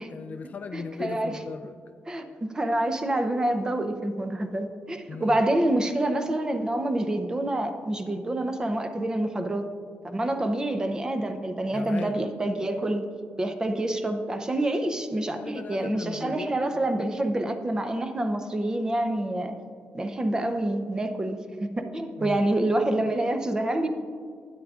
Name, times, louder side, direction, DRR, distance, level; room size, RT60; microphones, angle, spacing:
voice 1, 0.1-1.8 5.1-5.4 11.7-12.2 15.4-16.7 22.2-22.4, left 5 dB, 40° left, 7 dB, 0.4 m, -37 dB
voice 2, 0.7-1.4 2.1-9.6 10.0-13.0 13.4-19.5 19.9-23.9, right 1 dB, 20° right, 7 dB, 0.6 m, -27 dB
12.0 x 9.4 x 2.4 m, 2.2 s
wide cardioid pair, 140°, 4 cm